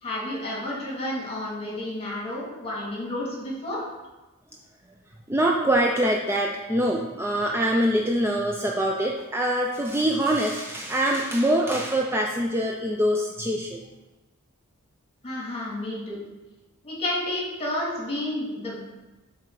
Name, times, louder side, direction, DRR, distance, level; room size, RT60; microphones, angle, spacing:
voice 1, 0.0-3.8 15.2-16.2 16.8-18.8, left 1 dB, 25° left, -4 dB, 2.2 m, -31 dB
voice 2, 5.3-13.8, right 1 dB, 10° right, 0 dB, 0.4 m, -24 dB
7.4 x 3.8 x 4.6 m, 1.1 s
head